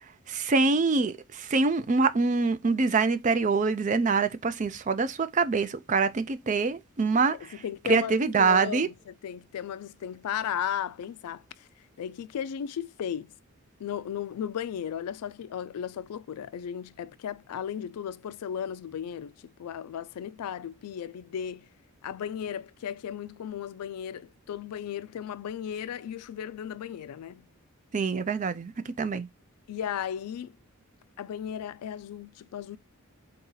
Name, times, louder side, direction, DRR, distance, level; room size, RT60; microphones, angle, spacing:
voice 1, 0.3-7.5 7.9-8.9 27.9-29.3, right 4 dB, 35° right, 0.4 m, -25 dB
voice 2, 7.3-11.7 12.0-13.3 13.8-19.3 19.6-21.7 22.0-27.4 29.7-30.6 31.2-32.8, left 9 dB, 85° left, 0.3 m, -35 dB
3.9 x 2.8 x 3.7 m
head